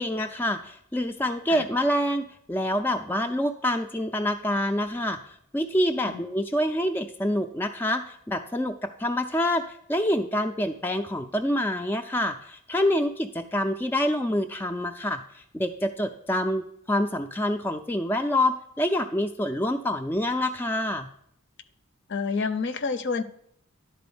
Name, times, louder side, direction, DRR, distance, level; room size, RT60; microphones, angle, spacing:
voice 1, 0.0-21.1, left 1 dB, 10° left, 4 dB, 0.3 m, -27 dB
voice 2, 22.1-23.2, left 4 dB, 55° left, 12 dB, 0.6 m, -28 dB
11.0 x 4.2 x 7.0 m, 0.70 s
head